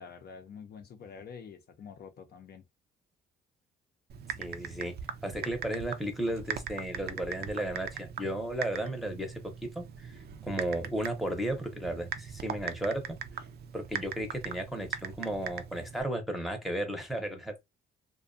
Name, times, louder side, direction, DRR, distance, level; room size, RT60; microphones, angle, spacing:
voice 1, 0.0-2.7, left 6 dB, 55° left, 0.5 m, -47 dB
Typing, 4.1-16.0, right 7 dB, 55° right, 0.4 m, -41 dB
voice 2, 4.4-4.9 5.2-13.2 13.7-17.5, right 1 dB, ahead, 0.7 m, -34 dB
2.4 x 2.2 x 2.5 m
cardioid pair, 90°, 20 cm